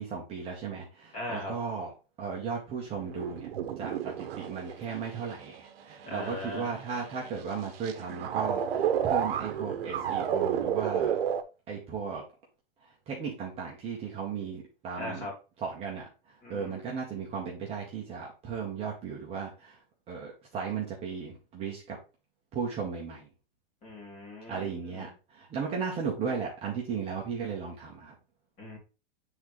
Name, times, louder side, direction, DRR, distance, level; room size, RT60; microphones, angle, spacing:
voice 1, 0.0-1.9 2.2-3.5 3.8-11.1 11.7-12.2 12.8-15.2 15.6-19.8 20.1-22.0 22.5-23.3 24.5-28.1, right 6 dB, 20° right, -2 dB, 1.2 m, -36 dB
voice 2, 1.1-1.5 6.0-6.7 14.9-15.3 16.4-16.8 23.8-25.1 28.6-28.8, left 1 dB, 25° left, -2 dB, 2.9 m, -39 dB
sound 1, 3.0-11.4, right 9 dB, 70° right, 1.0 m, -32 dB
7.9 x 3.9 x 3.1 m, 0.31 s
supercardioid pair, 160°, 30 cm